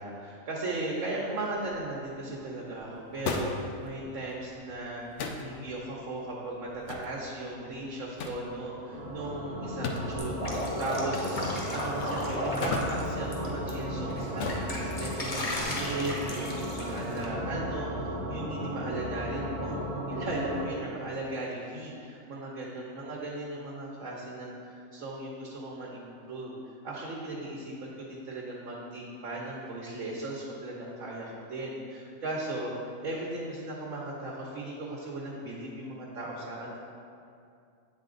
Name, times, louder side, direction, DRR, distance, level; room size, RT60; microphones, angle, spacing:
voice 1, 0.0-26.5 26.8-32.7 33.0-36.8, right 2 dB, 75° right, -4 dB, 1.2 m, -37 dB
sound 1, 1.5-15.6, left 3 dB, 65° left, 0.9 m, -40 dB
sound 2, 8.9-20.7, equal, 35° right, 0.8 m, -35 dB
Drip, 10.2-13.7 14.1-17.2, left 1 dB, 30° left, 0.9 m, -35 dB
8.4 x 4.1 x 3.8 m, 2.4 s
omnidirectional pair, 1.4 m